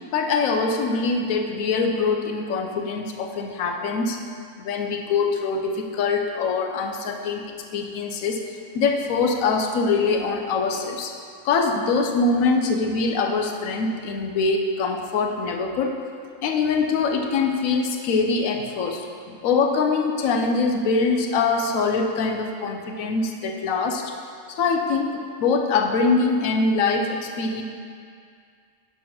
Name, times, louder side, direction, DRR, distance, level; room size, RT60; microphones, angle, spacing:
voice 1, 0.1-4.2 4.6-7.4 7.7-11.1 11.4-15.9 16.4-24.1 24.5-27.6, left 4 dB, 80° left, 3 dB, 1.1 m, -23 dB
6.2 x 4.6 x 5.8 m, 2.3 s
omnidirectional pair, 1.4 m